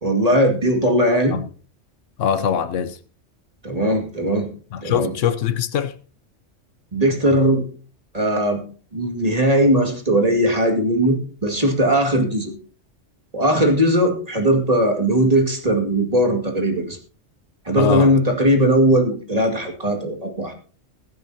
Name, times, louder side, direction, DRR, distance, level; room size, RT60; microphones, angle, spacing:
voice 1, 0.0-1.4 3.6-4.5 4.8-5.1 6.9-7.6 8.1-8.6 8.9-12.5 13.3-17.0 17.7-20.5, equal, 30° right, 2.3 m, -19 dB
voice 2, 2.2-3.0 4.7-5.9 17.7-18.1, left 8 dB, 80° left, 1.2 m, -22 dB
22.0 x 9.1 x 2.8 m
omnidirectional pair, 1.3 m